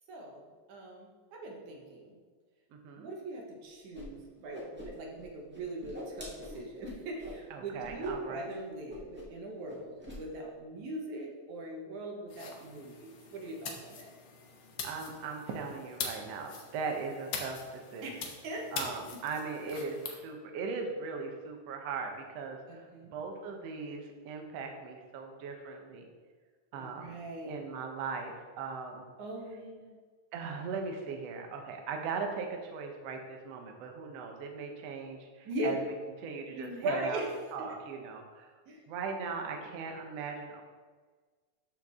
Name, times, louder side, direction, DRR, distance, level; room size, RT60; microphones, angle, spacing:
voice 1, 0.1-0.4 0.7-2.2 3.0-14.1 18.0-18.9 22.7-23.1 26.7-27.6 29.2-29.9 35.5-35.8 36.5-37.3 37.6-37.7 38.7-38.8, right 1 dB, 85° right, 0 dB, 2.7 m, -40 dB
voice 2, 2.7-3.1 7.5-8.5 14.8-18.1 18.7-26.1 26.7-27.2 27.4-29.0 30.3-35.8 36.2-37.2 37.5-38.5 38.9-40.6, right 5 dB, 65° right, 3 dB, 1.9 m, -39 dB
Whoosh swoosh swish, 3.9-4.0 4.3-5.2 5.5-7.4 7.8-8.1 8.4-8.5 8.9-9.4 9.6-10.2, left 1 dB, 5° right, 0.8 m, -45 dB
sound 1, 12.3-20.2, left 5 dB, 70° left, 1.1 m, -43 dB
12.5 x 4.5 x 3.6 m, 1.4 s
omnidirectional pair, 3.3 m